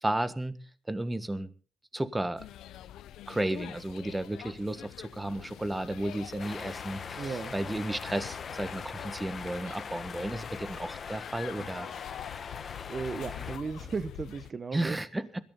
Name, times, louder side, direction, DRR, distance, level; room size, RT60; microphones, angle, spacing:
voice 1, 0.0-0.6 0.9-1.5 1.9-2.4 3.3-11.9 14.7-15.4, right 1 dB, 15° right, 1.6 m, -33 dB
sound 1, 2.4-14.5, left 12 dB, 80° left, 0.7 m, -45 dB
sound 2, 6.4-13.6, left 6 dB, 45° left, 1.4 m, -41 dB
voice 2, 7.2-7.5 12.6-15.0, right 4 dB, 35° right, 1.0 m, -36 dB
21.0 x 14.5 x 4.0 m
cardioid pair, 90°, 0 cm